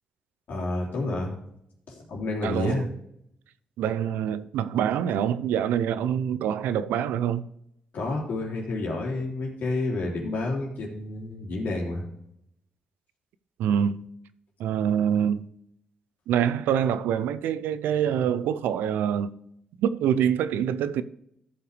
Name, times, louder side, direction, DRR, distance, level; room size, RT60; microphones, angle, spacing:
voice 1, 0.5-1.3 1.9-2.9 7.9-12.0, left 2 dB, 70° left, 3.1 m, -29 dB
voice 2, 2.4-2.8 3.8-7.4 13.6-14.0 14.6-15.4 16.3-19.3 19.8-21.0, right 9 dB, 90° right, 0.5 m, -25 dB
13.5 x 5.7 x 3.3 m
cardioid pair, 75°, 3 cm